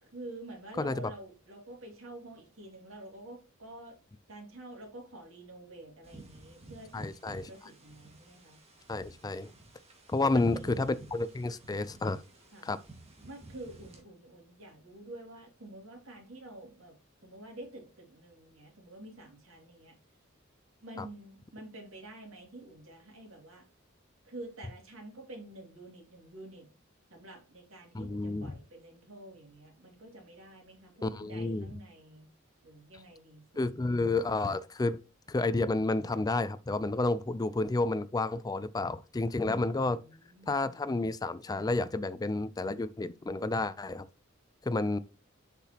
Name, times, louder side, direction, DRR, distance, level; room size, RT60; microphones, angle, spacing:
voice 1, 0.0-4.0 4.3-8.6 10.2-10.9 12.5-12.7 13.2-17.0 17.2-20.0 20.8-23.6 24.2-26.7 27.1-32.3 32.6-33.8 39.8-40.5, right 1 dB, 85° right, 2.6 m, -48 dB
voice 2, 0.8-1.1 6.9-7.5 8.9-9.5 10.1-12.2 12.6-12.8 21.0-21.1 27.9-28.5 31.0-31.7 33.6-35.0 35.3-40.0 40.5-44.1 44.6-45.0, left 2 dB, 20° left, 0.4 m, -30 dB
sound 1, 6.0-14.0, right 2 dB, 30° right, 1.8 m, -52 dB
7.0 x 5.7 x 2.9 m
head